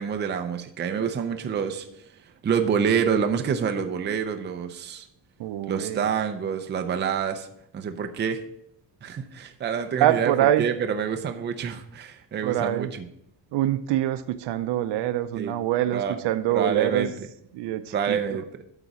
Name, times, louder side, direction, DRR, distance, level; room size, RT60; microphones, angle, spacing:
voice 1, 0.0-1.9 2.4-5.1 5.7-7.5 7.7-8.4 9.0-10.3 10.6-13.0 15.3-15.5 15.9-16.2 16.5-17.1 17.9-18.4, right 7 dB, 25° right, 6 dB, 0.5 m, -27 dB
voice 2, 5.4-6.1 10.0-10.7 12.4-12.9 13.5-17.1 17.5-18.2, right 12 dB, 70° right, 12 dB, 0.6 m, -25 dB
12.0 x 4.1 x 4.8 m, 0.74 s
cardioid pair, 175°, 43 cm